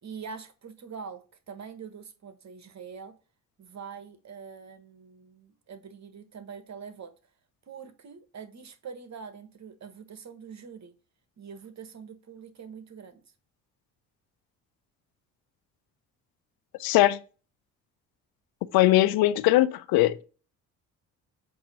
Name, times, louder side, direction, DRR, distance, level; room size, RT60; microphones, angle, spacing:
voice 1, 0.0-3.1 3.6-7.1 7.7-10.9 11.4-13.2, right 6 dB, 50° right, 1.2 m, -44 dB
voice 2, 16.8-17.2 18.7-20.2, left 16 dB, 85° left, 0.6 m, -21 dB
7.8 x 2.8 x 5.4 m
supercardioid pair, 65°, 36 cm